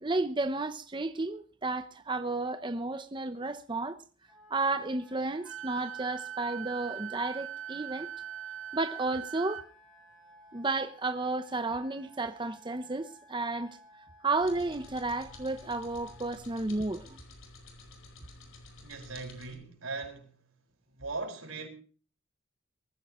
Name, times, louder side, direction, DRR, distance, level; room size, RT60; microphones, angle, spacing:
voice 1, 0.0-4.0 4.5-8.1 8.7-9.6 10.5-13.8 14.2-17.2, right 3 dB, 20° right, 0.8 m, -32 dB
Wind instrument woodwind instrument, 4.2-16.3, equal, ahead, 8.0 m, -57 dB
Wind instrument woodwind instrument 2, 5.4-9.7, right 10 dB, 70° right, 0.9 m, -41 dB
sound 1, 14.4-19.5, left 2 dB, 70° left, 4.8 m, -51 dB
voice 2, 18.8-20.4 20.9-21.7, right 3 dB, 85° right, 5.2 m, -39 dB
23.5 x 15.0 x 3.1 m
head